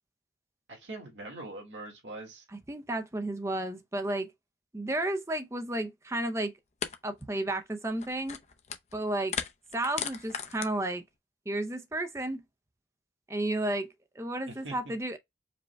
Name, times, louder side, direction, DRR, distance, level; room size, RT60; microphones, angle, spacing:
voice 1, 0.7-2.4 14.5-14.9, right 2 dB, 85° right, 1.8 m, -43 dB
voice 2, 2.5-4.3 4.7-6.5 7.0-8.4 8.9-9.3 9.7-11.0 11.5-12.4 13.3-13.9 14.2-15.2, right 1 dB, 15° right, 0.5 m, -32 dB
sound 1, 6.1-6.2 6.8-7.0 7.2-7.5 7.9-8.9 9.2-10.7, left 7 dB, 40° left, 0.5 m, -36 dB
5.0 x 2.2 x 3.4 m
head